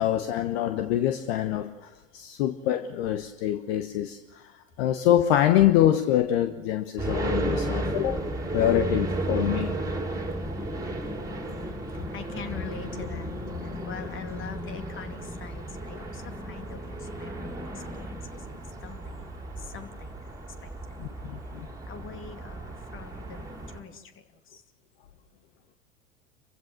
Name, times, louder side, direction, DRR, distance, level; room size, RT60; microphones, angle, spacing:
voice 1, 0.0-8.2 8.5-9.7 21.0-21.7, left 11 dB, 55° left, 9 dB, 1.2 m, -25 dB
sound 1, 7.0-23.8, right 1 dB, 10° right, 3.7 m, -34 dB
voice 2, 12.1-13.3 13.9-17.7 18.0-18.2 18.8-19.3 19.7-20.1 20.9-21.0 21.9-24.0, left 6 dB, 35° left, 7 dB, 2.5 m, -42 dB
29.0 x 15.5 x 7.6 m, 1.2 s
figure-of-eight pair, 85°, 36 cm